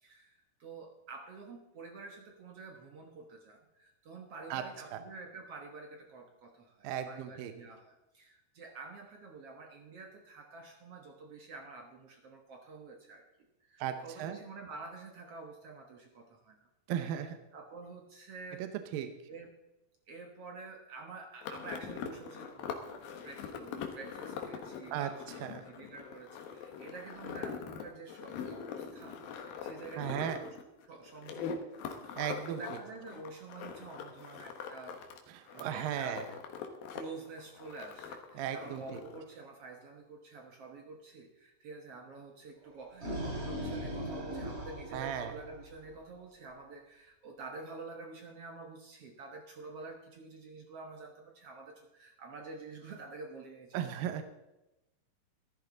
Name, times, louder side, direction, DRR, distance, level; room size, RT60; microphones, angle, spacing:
voice 1, 0.0-13.2 13.7-16.7 17.5-18.7 19.3-19.5 20.1-30.6 30.8-31.6 32.0-35.0 35.5-36.4 36.9-54.0, right 3 dB, 55° right, 2 dB, 1.8 m, -48 dB
voice 2, 6.8-7.5 13.8-14.4 16.9-17.4 18.6-19.1 24.9-25.1 25.4-25.6 30.0-30.4 32.2-32.6 35.4-36.2 38.4-39.0 44.9-45.3 53.7-54.2, right 10 dB, 80° right, 8 dB, 2.6 m, -36 dB
sound 1, 21.4-35.2 35.5-37.0 37.3-39.2, left 6 dB, 80° left, 3.0 m, -43 dB
sound 2, 42.7-45.9, equal, 20° right, 2.8 m, -39 dB
14.0 x 13.5 x 3.9 m, 0.94 s
omnidirectional pair, 4.1 m